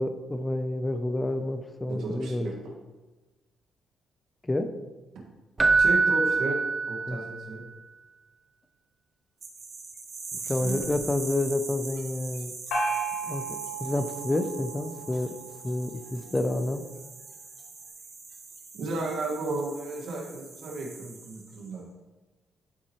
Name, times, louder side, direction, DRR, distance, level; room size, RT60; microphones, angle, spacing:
voice 1, 0.0-2.5 4.4-4.7 7.1-7.2 10.5-12.5 13.3-15.3 15.6-16.9, left 1 dB, 15° left, 9 dB, 0.6 m, -29 dB
voice 2, 1.9-2.5 5.8-6.6 6.9-7.6 10.6-10.8 18.7-21.9, right 2 dB, 70° right, -1 dB, 1.8 m, -33 dB
Keyboard (musical), 5.6-7.5 10.8-11.0, right 4 dB, 25° right, 0.4 m, -24 dB
sound 1, 9.4-21.7, right 4 dB, 50° right, 1.6 m, -42 dB
Gong, 12.7-16.2, right 3 dB, 85° left, 1.8 m, -34 dB
11.5 x 4.1 x 3.1 m, 1.2 s
cardioid pair, 90°, 0 cm